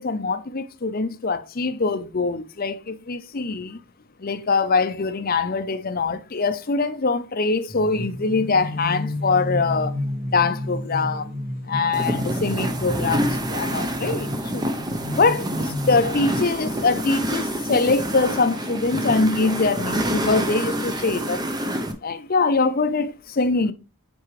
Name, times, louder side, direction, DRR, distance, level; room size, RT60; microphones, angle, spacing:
voice 1, 0.0-3.8 4.2-9.9 10.3-11.3 11.7-14.7 15.1-21.7 22.0-23.7, left 3 dB, 40° left, 0.6 m, -23 dB
sound 1, 7.7-16.0, left 1 dB, 40° right, 1.3 m, -31 dB
sound 2, 11.9-21.9, equal, 20° right, 0.6 m, -27 dB
7.4 x 4.6 x 3.1 m
head